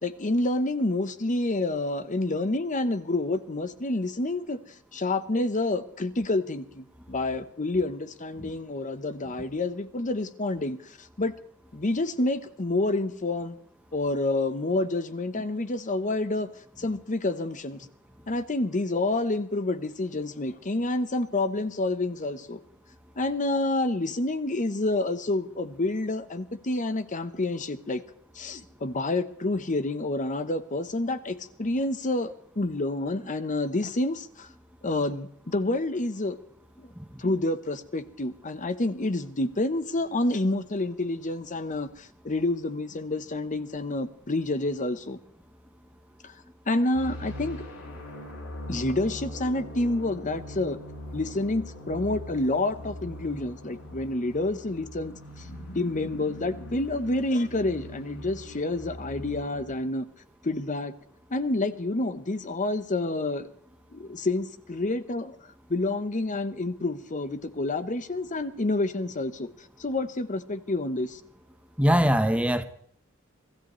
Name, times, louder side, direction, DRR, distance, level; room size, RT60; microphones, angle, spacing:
voice 1, 0.0-4.6 4.9-11.3 11.7-13.6 13.9-16.5 16.8-17.9 18.3-22.6 23.2-28.0 28.3-34.5 34.8-36.4 36.8-36.9 37.2-45.2 46.2-46.3 46.7-47.6 48.7-50.8 51.1-55.5 55.7-60.0 60.4-60.9 61.3-63.4 63.9-65.4 65.7-69.5 69.8-71.2, left 2 dB, 35° left, 0.9 m, -28 dB
sound 1, 46.9-59.7, left 1 dB, 80° left, 6.2 m, -41 dB
voice 2, 71.8-72.6, equal, 5° right, 0.9 m, -22 dB
24.0 x 14.5 x 3.1 m
head